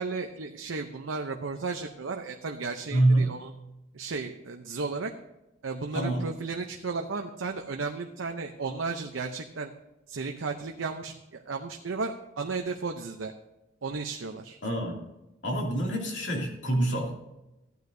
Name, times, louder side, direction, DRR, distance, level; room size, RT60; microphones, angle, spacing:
voice 1, 0.0-3.5 3.9-5.1 5.6-9.7 10.1-13.3 13.8-14.6, right 4 dB, 90° right, 4 dB, 0.7 m, -34 dB
voice 2, 2.9-3.3 5.9-6.2 14.6-15.0 15.4-17.1, right 1 dB, 65° left, -1 dB, 2.6 m, -26 dB
15.0 x 9.3 x 2.7 m, 0.96 s
head